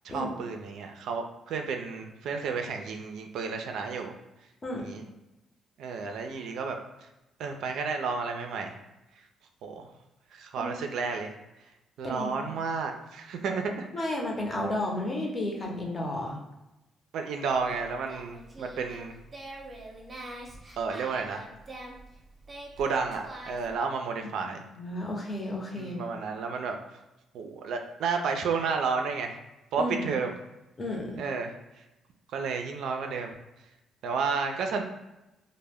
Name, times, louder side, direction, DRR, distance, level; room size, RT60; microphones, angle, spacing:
voice 1, 0.0-4.1 4.8-5.0 5.8-6.8 7.4-8.7 9.6-9.9 10.3-11.3 12.0-13.9 17.1-19.2 20.8-21.5 22.8-24.6 25.8-27.0 27.3-29.4 29.7-30.3 31.2-31.5 32.3-33.4 34.0-34.8, right 5 dB, 80° right, 4 dB, 0.3 m, -31 dB
voice 2, 4.6-4.9 10.6-10.7 12.0-12.5 13.9-16.4 24.8-26.0 29.8-30.1 30.8-31.2, left 1 dB, 35° left, 0 dB, 0.6 m, -32 dB
Singing, 17.5-23.8, right 1 dB, 25° right, 0.6 m, -45 dB
2.2 x 2.0 x 3.4 m, 0.96 s
cardioid pair, 90°, 0 cm